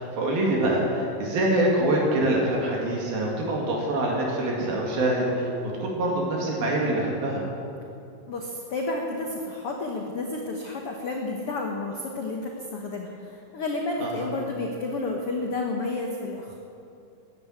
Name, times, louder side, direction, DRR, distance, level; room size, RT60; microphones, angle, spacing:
voice 1, 0.0-5.5 5.8-7.4 14.0-14.3, right 1 dB, 70° right, -2 dB, 4.0 m, -25 dB
voice 2, 8.3-16.6, left 2 dB, 75° left, 1 dB, 1.3 m, -31 dB
14.5 x 10.0 x 9.2 m, 2.6 s
omnidirectional pair, 4.5 m